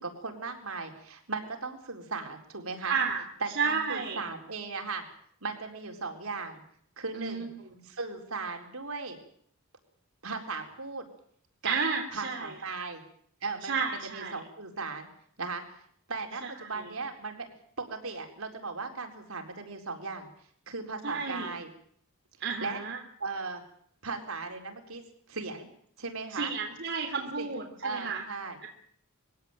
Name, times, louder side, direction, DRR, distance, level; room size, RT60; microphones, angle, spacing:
voice 1, 0.0-3.0 3.4-5.0 5.4-6.6 7.0-7.5 7.9-9.2 10.2-11.1 11.6-11.8 12.1-13.0 13.4-15.1 15.4-15.6 16.1-17.5 17.8-20.3 20.7-21.7 22.6-22.8 23.2-23.6 24.0-25.0 25.3-25.7 26.0-26.5 27.4-27.5 27.8-28.7, right 4 dB, 80° right, 3 dB, 4.3 m, -37 dB
voice 2, 2.8-3.2 3.5-4.3 7.1-7.5 11.6-12.8 13.6-14.4 16.4-16.9 21.0-21.5 22.4-23.0 26.3-28.2 28.6-28.7, right 5 dB, 60° right, 1 dB, 3.2 m, -32 dB
22.5 x 17.0 x 9.1 m, 0.63 s
head